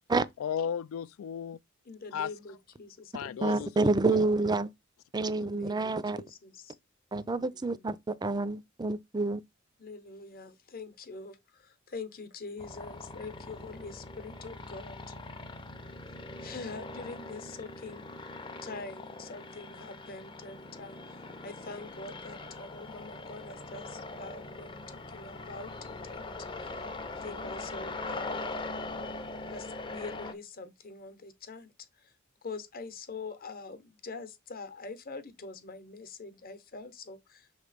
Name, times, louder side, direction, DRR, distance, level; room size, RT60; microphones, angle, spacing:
voice 1, 0.4-1.6 2.1-2.3 3.1-4.2 5.4-5.5, left 8 dB, 75° left, 0.3 m, -35 dB
voice 2, 1.9-3.5 5.5-6.7 7.5-7.9 9.8-15.0 16.4-18.0 18.6-21.0 21.4-26.7 27.1-28.6 29.5-31.7 32.4-37.5, left 3 dB, 45° left, 1.0 m, -44 dB
voice 3, 3.4-4.7 5.1-6.2 7.1-9.4, right 3 dB, 20° right, 0.4 m, -28 dB
sound 1, 12.6-30.3, left 2 dB, 25° left, 0.6 m, -41 dB
6.5 x 3.2 x 4.9 m
head